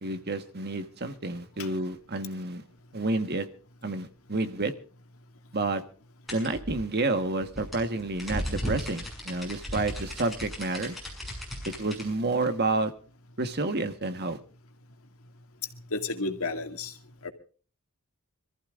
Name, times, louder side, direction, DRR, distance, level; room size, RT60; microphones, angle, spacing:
voice 1, 0.0-2.6 2.9-3.5 3.8-4.7 5.5-5.8 6.3-10.9 11.6-12.9 13.4-14.4, right 2 dB, 50° right, 9 dB, 1.4 m, -29 dB
sound 1, 6.3-12.1, equal, ahead, 6.9 m, -36 dB
voice 2, 15.9-16.9 17.2-17.3, left 3 dB, 70° left, 6 dB, 2.2 m, -32 dB
26.5 x 14.5 x 2.5 m, 0.40 s
head